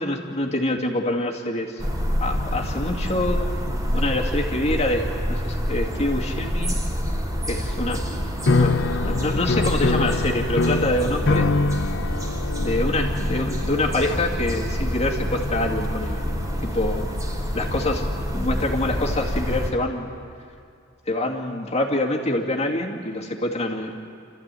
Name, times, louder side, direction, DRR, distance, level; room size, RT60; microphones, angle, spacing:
voice 1, 0.0-1.8 2.2-6.8 7.5-8.1 8.5-8.8 9.0-11.5 12.6-16.2 16.6-17.1 17.5-18.1 18.3-20.1 21.1-24.0, left 1 dB, 35° left, 0 dB, 2.3 m, -26 dB
sound 1, 1.8-19.7, equal, 15° right, 3.1 m, -27 dB
sound 2, 8.4-16.8, left 3 dB, 65° left, 0.7 m, -26 dB
29.0 x 14.5 x 9.1 m, 2.4 s
head